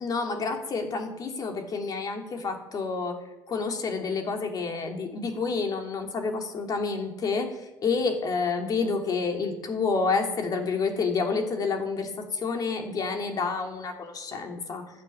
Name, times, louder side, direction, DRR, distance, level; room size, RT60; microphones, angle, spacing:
voice 1, 0.0-3.1 3.5-7.5 7.8-14.8, left 4 dB, 50° left, 3 dB, 3.1 m, -29 dB
12.0 x 10.0 x 9.2 m, 1.0 s
supercardioid pair, 95°, 9 cm